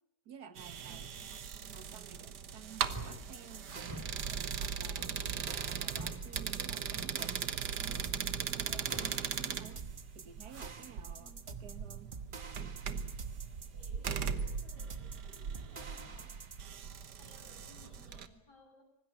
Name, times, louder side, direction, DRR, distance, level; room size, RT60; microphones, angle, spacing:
voice 1, 0.3-1.1 1.5-3.7 4.2-7.8 8.4-9.9 10.1-12.1, right 8 dB, 70° right, 12 dB, 2.0 m, -53 dB
sound 1, 0.6-18.3, right 7 dB, 90° right, 1.8 m, -39 dB
voice 2, 0.9-1.4 4.9-5.4 11.1-11.4 13.7-18.8, left 2 dB, 80° left, 2 dB, 8.4 m, -61 dB
sound 2, 2.9-3.3 3.8-4.2 4.9-5.3 5.9-6.2 6.9-7.3 7.8-8.2 8.8-9.2, equal, 10° right, 4.8 m, -47 dB
sound 3, 2.9-16.6, right 4 dB, 35° right, 1.3 m, -49 dB
25.5 x 19.5 x 8.8 m, 0.85 s
omnidirectional pair, 1.8 m